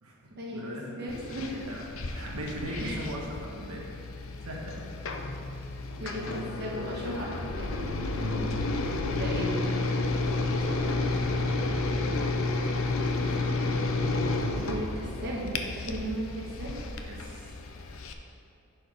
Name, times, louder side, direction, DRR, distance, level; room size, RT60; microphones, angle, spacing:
voice 1, 0.0-1.8 2.1-3.9 4.4-4.9 8.2-8.5 10.7-11.2 17.0-17.5, equal, 80° right, -2 dB, 1.3 m, -39 dB
voice 2, 1.0-1.7 2.8-3.0 6.0-7.8 9.1-10.2 14.6-16.7, right 1 dB, 45° right, -4 dB, 1.3 m, -36 dB
sound 1, 1.1-18.1, left 2 dB, 60° left, 0.6 m, -31 dB
10.0 x 4.8 x 5.0 m, 2.6 s
head